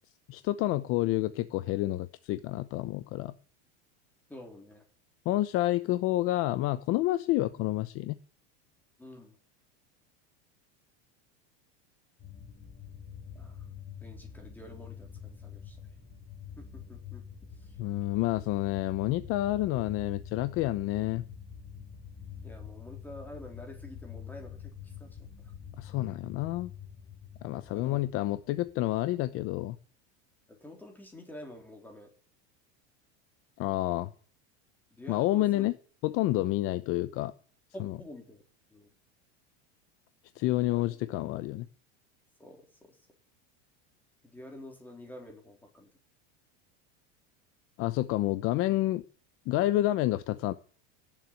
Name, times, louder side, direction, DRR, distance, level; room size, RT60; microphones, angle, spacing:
voice 1, 0.3-3.3 5.2-8.2 17.8-21.2 25.8-26.7 27.4-29.8 33.6-34.1 35.1-35.7 36.0-37.3 37.8-38.0 40.4-41.7 47.8-49.0 49.5-50.5, left 16 dB, 40° left, 13 dB, 0.8 m, -29 dB
voice 2, 4.3-4.8 9.0-9.4 13.3-13.6 14.0-15.8 16.6-17.2 22.4-25.3 27.5-28.0 30.6-32.1 35.0-35.7 37.7-38.4 38.7-38.9 40.6-41.0 42.4-42.9 44.3-45.9, left 1 dB, 5° left, 2 dB, 3.7 m, -48 dB
sound 1, 12.2-29.0, left 7 dB, 25° left, 2.0 m, -46 dB
17.5 x 7.5 x 9.5 m, 0.43 s
supercardioid pair, 150°, 33 cm